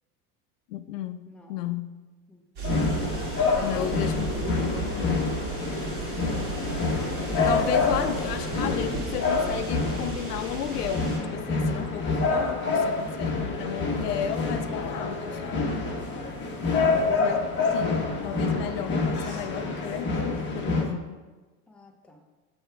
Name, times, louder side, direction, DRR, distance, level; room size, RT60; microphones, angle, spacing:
voice 1, 0.7-1.9 3.6-5.3 7.4-15.9 17.0-21.2, left 10 dB, 85° left, 10 dB, 0.6 m, -34 dB
voice 2, 1.3-1.6 2.3-2.4 3.1-3.9 15.9-16.3 21.7-22.2, left 2 dB, 5° left, 1 dB, 0.5 m, -46 dB
sound 1, 2.6-20.8, left 3 dB, 25° left, 1.1 m, -27 dB
sound 2, 2.6-11.2, right 4 dB, 45° right, 2.0 m, -35 dB
6.2 x 3.5 x 4.5 m, 1.2 s
hypercardioid pair, 105°, 46 cm